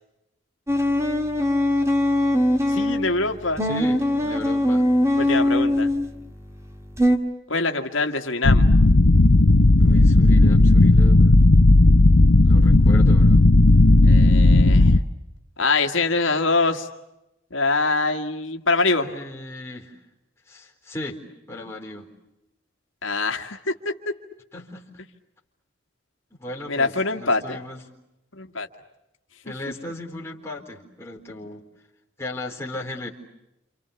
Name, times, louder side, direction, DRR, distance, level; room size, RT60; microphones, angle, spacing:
sound 1, 0.7-3.1 3.6-6.1 7.0-7.2, left 1 dB, 15° right, 2.1 m, -21 dB
voice 1, 2.7-3.7 5.2-5.9 7.5-8.7 14.0-15.0 15.6-16.9 17.5-19.1 23.0-23.9 26.7-27.6 28.3-28.7, left 3 dB, 85° left, 4 dB, 1.9 m, -24 dB
voice 2, 3.6-4.9 9.8-11.3 12.4-13.5 19.0-19.9 20.5-21.2 21.5-22.1 24.5-25.0 26.3-27.8 29.4-31.6 32.2-33.1, left 1 dB, 15° left, -1 dB, 4.0 m, -36 dB
sound 2, 8.4-15.0, left 2 dB, 70° left, 0.9 m, -14 dB
29.0 x 28.0 x 7.1 m, 0.92 s
head